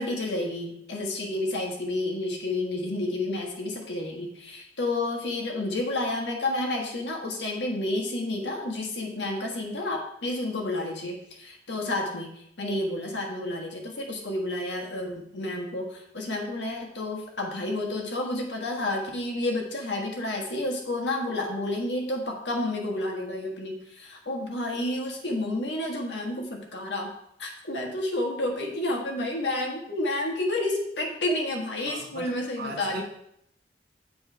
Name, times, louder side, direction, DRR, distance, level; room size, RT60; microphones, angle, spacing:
voice 1, 0.0-12.3 12.6-27.1 27.4-33.0, left 1 dB, 80° left, 1 dB, 1.5 m, -30 dB
voice 2, 31.9-33.0, right 2 dB, 60° right, 2 dB, 1.3 m, -39 dB
8.1 x 4.3 x 4.6 m, 0.75 s
head